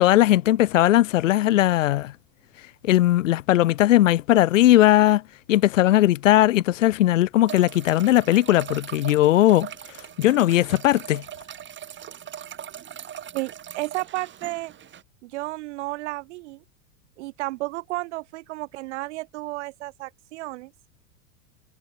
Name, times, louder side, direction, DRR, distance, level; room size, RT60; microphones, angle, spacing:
voice 1, 0.0-2.1 2.8-5.2 5.5-9.7 10.2-11.2, left 14 dB, 60° left, 0.9 m, -18 dB
sound 1, 7.4-15.0, right 10 dB, 25° right, 5.7 m, -40 dB
voice 2, 13.3-14.7 15.2-16.6 17.2-20.7, right 20 dB, 50° right, 5.4 m, -32 dB
figure-of-eight pair, 90°, 43 cm